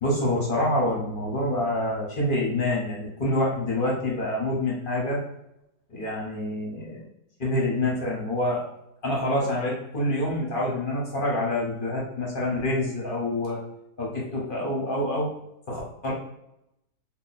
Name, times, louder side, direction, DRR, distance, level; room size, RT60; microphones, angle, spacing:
voice 1, 0.0-5.2 5.9-7.0 7.4-8.6 9.0-13.6 14.0-15.3 15.7-16.1, left 1 dB, 45° left, -4 dB, 0.8 m, -27 dB
2.8 x 2.2 x 4.0 m, 0.83 s
omnidirectional pair, 1.8 m